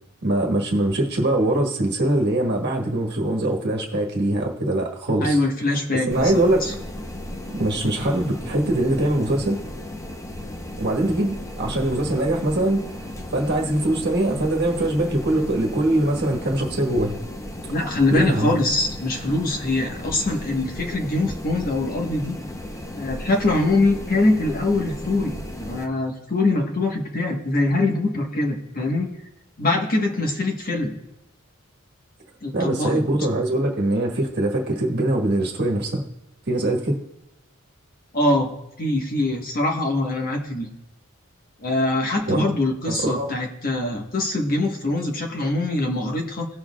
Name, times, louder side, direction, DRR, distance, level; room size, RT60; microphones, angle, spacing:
voice 1, 0.2-5.4 6.1-6.6 7.5-9.6 10.8-17.2 18.1-18.6 32.5-36.0 36.5-37.0 42.3-42.4 42.9-43.3, right 1 dB, 55° right, -1 dB, 1.4 m, -22 dB
voice 2, 5.2-6.7 17.7-22.4 22.9-29.1 29.6-30.9 32.4-33.0 38.1-38.5 38.8-40.7 41.6-46.5, left 2 dB, 45° left, 1 dB, 1.3 m, -23 dB
sound 1, 6.1-25.9, left 1 dB, 15° left, 0.7 m, -35 dB
18.0 x 6.4 x 2.3 m, 0.90 s
head